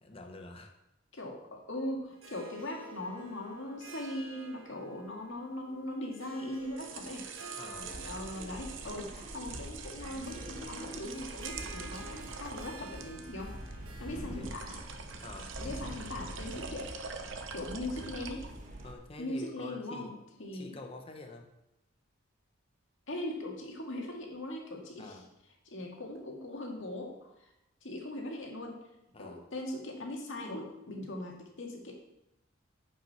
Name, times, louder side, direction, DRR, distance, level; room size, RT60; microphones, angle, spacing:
voice 1, 0.0-0.7 7.5-8.0 13.9-14.5 15.2-15.5 17.8-17.9 18.8-20.1 20.5-21.5 25.0-25.3 29.1-29.4, left 2 dB, 30° left, 3 dB, 0.9 m, -47 dB
voice 2, 1.1-7.3 8.0-13.5 14.0-14.8 15.6-16.9 17.5-18.5 19.2-20.8 23.1-25.2 25.7-27.5 27.8-28.8 29.2-31.9, left 1 dB, 70° left, 0 dB, 2.1 m, -40 dB
Harp, 2.1-15.9, right 4 dB, 85° right, 1.5 m, -51 dB
sound 1, 6.6-18.9, right 5 dB, 70° right, 0.9 m, -46 dB
sound 2, 7.7-18.9, equal, 40° right, 1.6 m, -45 dB
8.7 x 5.5 x 5.7 m, 0.88 s
head